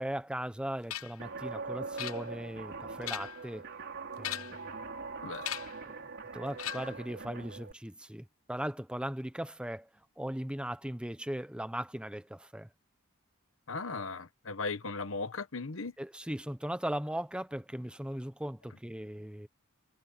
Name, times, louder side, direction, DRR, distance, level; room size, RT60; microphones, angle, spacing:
voice 1, 0.0-3.7 4.2-4.6 5.9-6.1 6.3-9.9 10.2-12.7 16.0-19.5, right 1 dB, 5° right, 0.9 m, -38 dB
sound 1, 0.9-1.2 2.0-2.6 2.9-3.5 4.2-4.7 5.4-5.8 6.6-7.1, left 11 dB, 90° left, 0.9 m, -39 dB
Guitar, 1.2-7.7, right 4 dB, 60° right, 3.4 m, -42 dB
voice 2, 13.7-15.9, left 3 dB, 65° left, 1.2 m, -37 dB
head